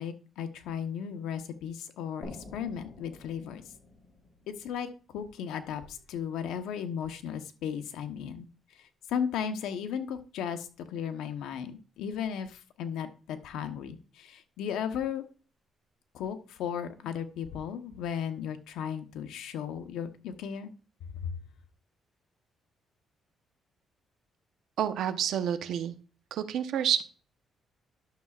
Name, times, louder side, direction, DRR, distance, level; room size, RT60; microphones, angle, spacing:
voice 1, 0.0-3.6 4.5-8.5 8.8-15.2 16.1-20.7 21.2-21.3, left 8 dB, 85° left, 8 dB, 1.0 m, -35 dB
sound 1, 2.2-5.7, left 2 dB, 35° left, 3.6 m, -49 dB
voice 2, 24.8-26.0 26.3-27.0, right 9 dB, 75° right, 10 dB, 0.9 m, -29 dB
11.5 x 6.8 x 2.4 m, 0.36 s
cardioid pair, 90°, 0 cm